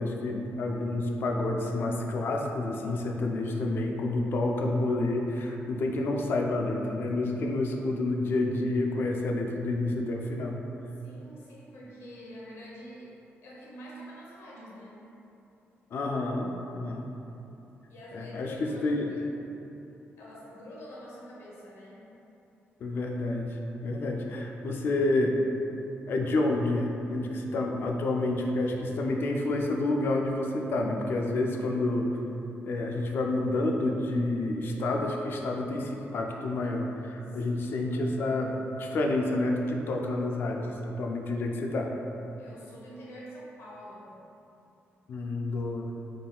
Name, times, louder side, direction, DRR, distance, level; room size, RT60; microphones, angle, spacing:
voice 1, 0.0-10.6 15.9-17.1 18.1-19.1 22.8-25.5 26.1-32.1 32.6-41.9 45.1-45.9, left 2 dB, 55° left, 1 dB, 0.4 m, -29 dB
voice 2, 11.0-13.1 13.4-15.1 17.9-19.2 20.2-22.1 23.9-24.1 37.2-37.9 42.4-44.2, equal, 75° left, -6 dB, 0.9 m, -46 dB
3.7 x 3.6 x 2.3 m, 3.0 s
wide cardioid pair, 150°, 5 cm